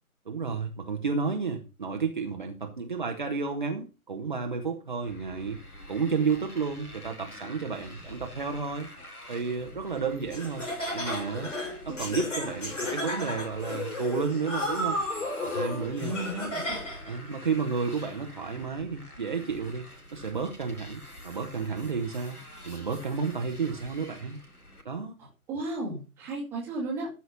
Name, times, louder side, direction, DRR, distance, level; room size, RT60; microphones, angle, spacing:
voice 1, 0.3-5.6 5.9-8.9 9.3-10.7 10.9-11.5 11.8-15.0 15.4-16.1 17.1-24.4 24.8-25.2, right 5 dB, 35° right, 4 dB, 1.2 m, -31 dB
Motorcycle, 5.0-24.8, left 1 dB, 85° left, 2.5 m, -47 dB
Laughter, 10.3-17.1, left 1 dB, 55° left, 5.9 m, -33 dB
voice 2, 16.0-16.8 25.2-27.1, right 2 dB, 5° right, -3 dB, 1.6 m, -34 dB
13.0 x 4.6 x 5.5 m, 0.31 s
figure-of-eight pair, 150°, 44 cm